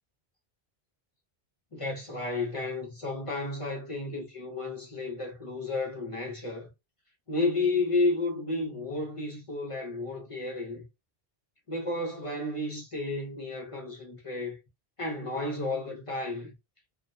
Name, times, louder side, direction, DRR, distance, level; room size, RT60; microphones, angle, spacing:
voice 1, 1.7-6.7 7.3-10.9 11.7-14.6 15.0-16.5, left 2 dB, 40° left, 0.6 m, -32 dB
2.5 x 2.1 x 2.6 m
omnidirectional pair, 1.0 m